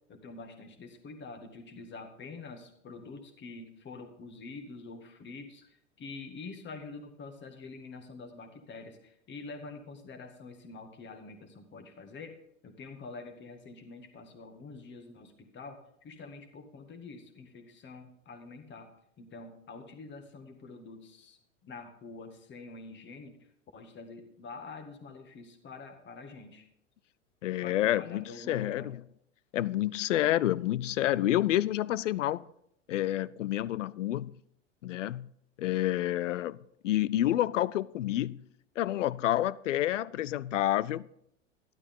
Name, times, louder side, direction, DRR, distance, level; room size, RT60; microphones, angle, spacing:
voice 1, 0.1-12.4 12.6-23.4 23.7-26.7 27.6-28.9, left 3 dB, 30° left, 1.9 m, -46 dB
voice 2, 27.4-29.0 29.5-32.4 32.9-34.3 34.8-35.3 35.6-36.6 36.8-38.4 38.8-41.0, left 13 dB, 75° left, 0.5 m, -29 dB
12.0 x 11.5 x 3.7 m
hypercardioid pair, 95°, 38 cm